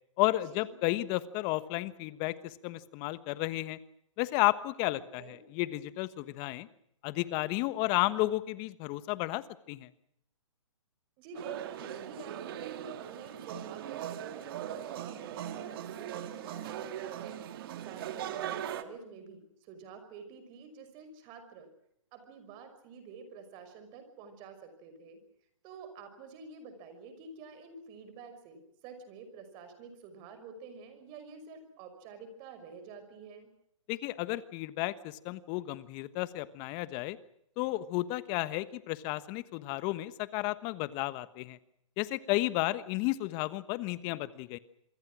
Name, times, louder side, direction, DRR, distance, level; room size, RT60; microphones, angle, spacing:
voice 1, 0.2-3.8 4.2-6.7 7.0-9.9 33.9-37.2 37.6-41.6 42.0-44.6, left 18 dB, 25° left, 15 dB, 1.3 m, -32 dB
voice 2, 5.0-5.5 11.2-17.4 17.8-21.7 22.1-25.2 25.6-33.5, right 5 dB, 30° right, 9 dB, 5.8 m, -48 dB
sound 1, 11.3-18.8, right 11 dB, 45° right, 2.0 m, -40 dB
27.0 x 23.5 x 6.3 m, 0.73 s
hypercardioid pair, 145°, 17 cm